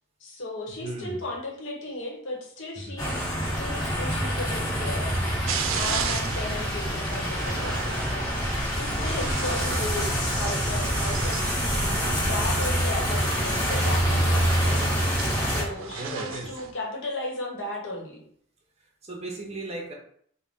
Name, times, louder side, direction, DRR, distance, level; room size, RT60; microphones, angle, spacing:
voice 1, 0.2-18.2, left 1 dB, 70° left, -1 dB, 1.0 m, -36 dB
voice 2, 0.8-1.2 2.9-3.0 8.9-9.6 15.9-16.6 18.8-19.9, right 2 dB, 30° right, 0 dB, 0.6 m, -37 dB
sound 1, 3.0-15.6, equal, 20° left, 1.1 m, -26 dB
sound 2, 5.5-16.7, right 7 dB, 90° right, 0.4 m, -37 dB
3.8 x 2.1 x 3.5 m, 0.63 s
head